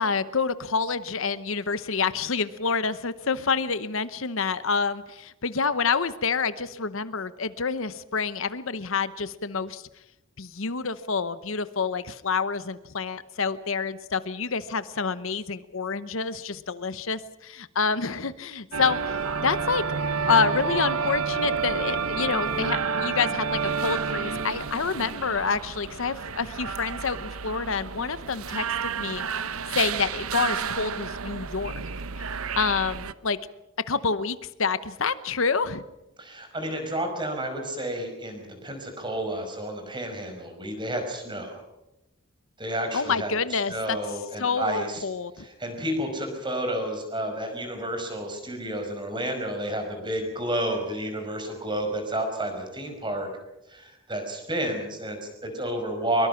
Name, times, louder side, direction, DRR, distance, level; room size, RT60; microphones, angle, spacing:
voice 1, 0.0-9.9 10.4-19.8 20.3-29.4 29.7-31.8 32.6-33.4 33.9-35.8 42.9-44.0 44.4-45.5, left 5 dB, 65° left, 14 dB, 0.9 m, -28 dB
sound 1, 18.7-33.1, right 5 dB, 80° right, 0.9 m, -30 dB
voice 2, 36.2-41.6 42.6-45.0 45.4-53.3 53.7-56.3, right 1 dB, 20° right, 5 dB, 5.3 m, -31 dB
23.0 x 23.0 x 5.9 m, 0.93 s
head